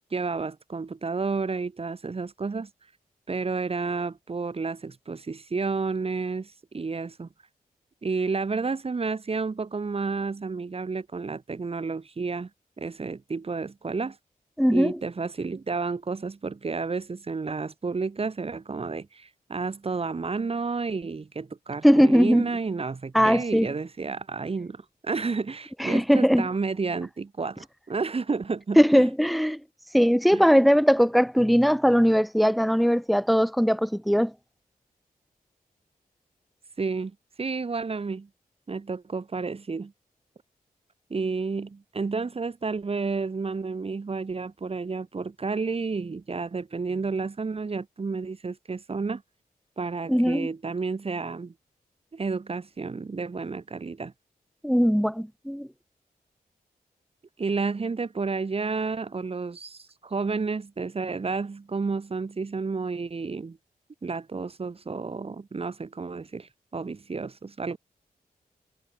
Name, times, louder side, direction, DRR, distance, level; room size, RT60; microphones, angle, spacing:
voice 1, 0.1-2.7 3.3-7.3 8.0-12.5 12.8-14.2 14.7-29.1 30.3-30.4 36.8-38.3 38.7-39.9 41.1-49.2 49.8-51.5 52.1-54.1 57.4-63.6 64.0-67.8, right 4 dB, 40° right, 7.1 m, -31 dB
voice 2, 14.6-15.0 21.8-22.4 23.1-23.7 25.8-26.5 28.8-29.6 29.9-34.3 50.1-50.5 54.6-55.7, equal, ahead, 3.2 m, -20 dB
wide cardioid pair, 140°, 15 cm